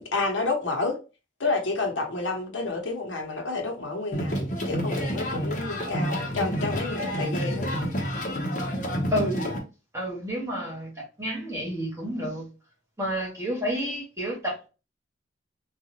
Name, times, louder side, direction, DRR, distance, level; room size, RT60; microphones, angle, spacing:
voice 1, 0.1-0.9 1.4-7.7, left 3 dB, 85° left, 1.0 m, -29 dB
sound 1, 4.1-9.6, equal, 40° left, 0.9 m, -29 dB
voice 2, 9.1-9.5 9.9-12.5 13.0-14.7, equal, 15° right, 1.3 m, -30 dB
3.9 x 2.4 x 2.9 m
head